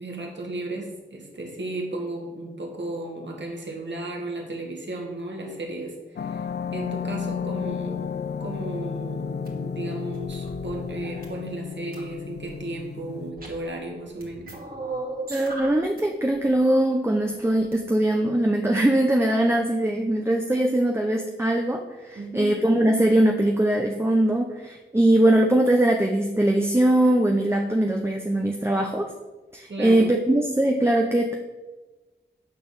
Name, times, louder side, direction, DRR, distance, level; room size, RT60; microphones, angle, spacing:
voice 1, 0.0-14.6 22.2-22.6 29.7-30.1, right 2 dB, 70° right, 0 dB, 2.1 m, -35 dB
sound 1, 6.2-13.3, left 6 dB, 60° left, 0.5 m, -32 dB
sound 2, 9.4-9.5 10.1-11.3 11.9-12.5 13.3-13.8 14.2-16.0 16.3-16.5 17.6-17.7, right 2 dB, 50° right, 2.7 m, -37 dB
voice 2, 15.3-29.1 29.5-31.4, right 1 dB, 15° right, 2 dB, 0.9 m, -21 dB
9.1 x 4.2 x 7.3 m, 1.2 s
cardioid pair, 40°, 19 cm